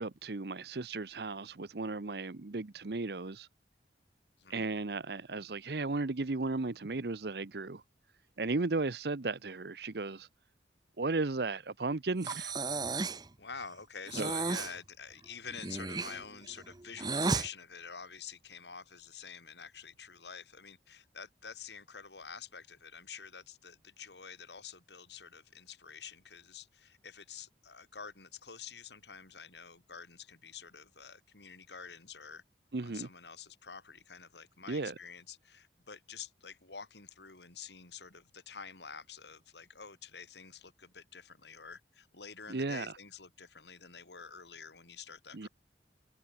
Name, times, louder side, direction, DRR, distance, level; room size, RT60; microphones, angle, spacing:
voice 1, 0.0-3.5 4.5-7.8 8.4-10.3 11.0-12.5 14.2-14.3 32.7-33.1 34.7-34.9 42.5-42.9 45.3-45.5, right 3 dB, 70° right, 0.8 m, -35 dB
Breathing, 12.2-13.3 14.1-14.7 15.5-17.5, right 3 dB, 25° right, 0.7 m, -34 dB
voice 2, 13.4-32.4 32.8-45.5, left 6 dB, 80° left, 3.9 m, -48 dB
head